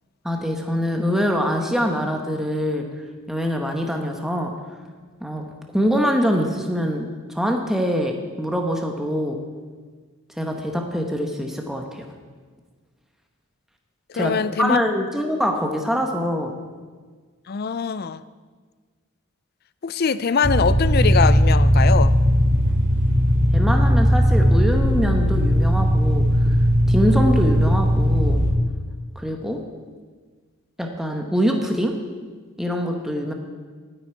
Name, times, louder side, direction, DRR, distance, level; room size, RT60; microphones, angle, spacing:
voice 1, 0.2-2.9 3.3-4.5 5.2-9.4 10.4-12.0 14.1-16.5 23.5-26.3 26.9-28.4 29.1-29.6 30.8-32.0 32.6-33.3, equal, ahead, 2 dB, 1.0 m, -24 dB
voice 2, 14.2-14.8 17.5-18.2 19.8-22.1, left 6 dB, 45° left, 15 dB, 0.4 m, -22 dB
sound 1, 20.4-28.5, equal, 60° right, 3.1 m, -18 dB
9.7 x 8.1 x 9.3 m, 1.5 s
head